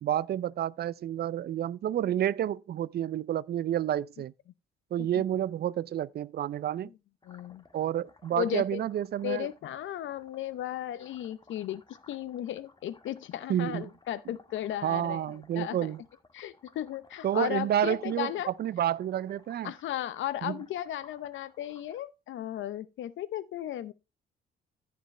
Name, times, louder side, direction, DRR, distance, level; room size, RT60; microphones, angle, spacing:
voice 1, 0.0-4.3 4.9-6.9 7.7-9.5 13.5-13.9 14.8-16.0 17.2-18.3 18.6-19.7 20.4-20.6, right 11 dB, 55° right, 0.5 m, -30 dB
voice 2, 7.2-7.6 8.4-8.8 9.2-11.8 12.1-15.3 15.5-15.8 16.3-18.5 19.6-23.9, left 11 dB, 75° left, 0.8 m, -35 dB
sound 1, 7.2-22.0, left 3 dB, 20° left, 1.2 m, -59 dB
14.5 x 5.2 x 3.3 m
cardioid pair, 90°, 20 cm